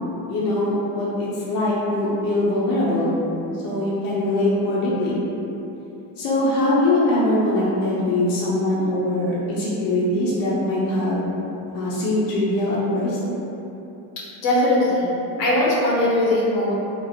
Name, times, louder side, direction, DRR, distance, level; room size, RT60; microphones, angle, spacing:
voice 1, 0.3-3.1 3.6-5.1 6.2-11.2 11.7-13.2, left 1 dB, 50° left, -7 dB, 0.8 m, -22 dB
voice 2, 14.4-16.7, left 1 dB, 80° left, -6 dB, 1.1 m, -20 dB
3.0 x 2.0 x 4.0 m, 2.9 s
cardioid pair, 115°, 44 cm